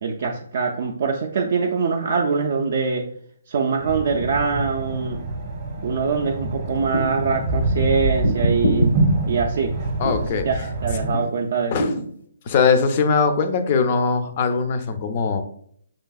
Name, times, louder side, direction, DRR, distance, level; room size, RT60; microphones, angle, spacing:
voice 1, 0.0-3.0 3.5-5.2 5.8-8.9 9.3-9.7 10.0-11.7, right 5 dB, 45° right, 1 dB, 0.4 m, -23 dB
sound 1, 3.8-11.1, right 2 dB, 25° right, 0.7 m, -26 dB
sound 2, 6.8-7.3 8.2-8.9 10.0-10.3 11.8-12.1, equal, 85° left, 0.8 m, -22 dB
voice 2, 10.0-10.5 11.1-11.2 11.7-11.9 12.5-15.4, left 5 dB, 30° left, 9 dB, 0.4 m, -21 dB
5.6 x 2.6 x 2.3 m, 0.63 s
hypercardioid pair, 170°, 0 cm